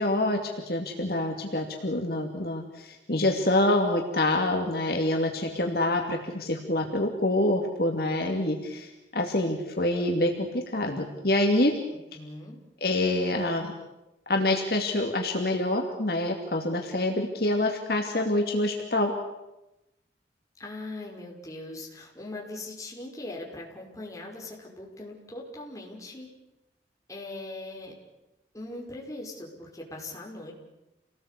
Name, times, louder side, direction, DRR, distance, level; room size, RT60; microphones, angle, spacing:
voice 1, 0.0-11.7 12.8-13.7 14.3-19.1, left 1 dB, 55° left, 2 dB, 2.6 m, -26 dB
voice 2, 12.1-12.6 20.6-26.3 27.1-27.9 28.5-30.5, left 2 dB, 20° left, -2 dB, 5.5 m, -40 dB
29.0 x 19.0 x 8.4 m, 0.95 s
head